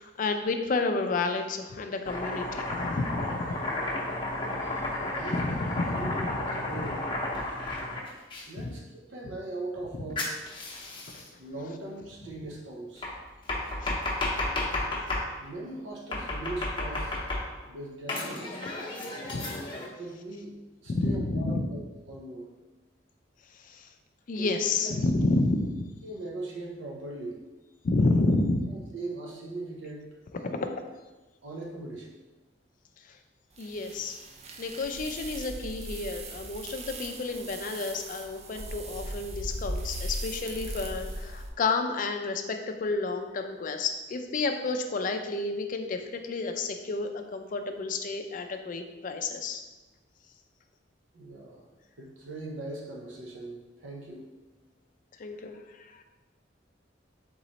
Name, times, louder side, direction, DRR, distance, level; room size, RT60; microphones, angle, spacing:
voice 1, 0.0-3.5 5.4-6.4 8.6-8.7 11.1-11.2 13.8-14.0 19.2-19.6 20.9-21.7 23.7-23.9 24.3-25.9 27.8-28.8 33.6-34.2 34.6-49.6 55.2-56.0, left 3 dB, 45° left, 6 dB, 0.4 m, -30 dB
Domestic sounds home sounds, 2.0-8.4 10.2-11.3 13.0-15.3 16.1-17.7 18.1-19.9, left 2 dB, 25° left, 0.7 m, -32 dB
voice 2, 5.1-7.0 8.5-10.2 11.4-13.1 15.4-17.2 17.7-18.6 20.0-20.5 20.8-22.5 24.4-24.5 24.8-25.0 26.0-27.4 28.7-30.1 30.4-30.7 31.4-32.2 51.1-51.7 52.0-54.3, right 2 dB, 80° right, -1 dB, 0.7 m, -40 dB
sound 1, 33.6-41.5, right 1 dB, 35° right, 0.4 m, -38 dB
3.8 x 3.1 x 4.0 m, 1.1 s
head